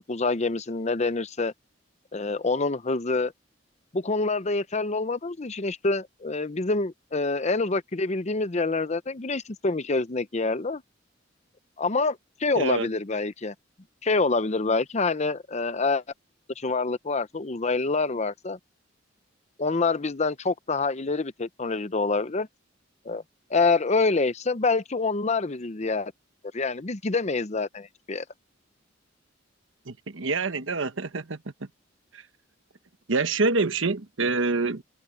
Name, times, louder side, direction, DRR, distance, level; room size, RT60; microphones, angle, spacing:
voice 1, 0.0-1.5 2.1-3.3 3.9-10.8 11.8-13.5 14.0-16.0 16.6-18.6 19.6-22.5 23.1-23.2 23.5-26.1 26.5-28.2, left 3 dB, 35° left, 0.8 m, -26 dB
voice 2, 12.5-12.9 29.9-31.4 32.1-32.2 33.1-34.8, right 3 dB, 90° right, 1.2 m, -26 dB
head